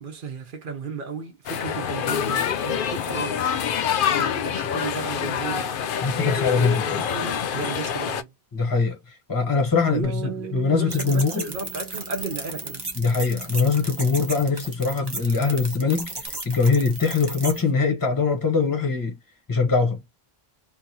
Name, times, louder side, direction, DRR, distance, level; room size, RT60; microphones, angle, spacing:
voice 1, 0.0-3.7 4.2-5.7 6.2-8.3 9.9-12.8, right 5 dB, 55° right, 0.9 m, -34 dB
sound 1, 1.5-8.2, left 8 dB, 65° left, 0.7 m, -26 dB
voice 2, 6.0-7.0 8.5-9.0 9.3-11.5 13.0-19.2 19.5-20.0, left 4 dB, 20° left, 0.9 m, -22 dB
Bass guitar, 10.0-16.3, right 8 dB, 80° right, 1.2 m, -42 dB
sound 2, 10.9-17.6, right 2 dB, 25° right, 0.8 m, -35 dB
3.0 x 2.6 x 2.7 m
omnidirectional pair, 1.1 m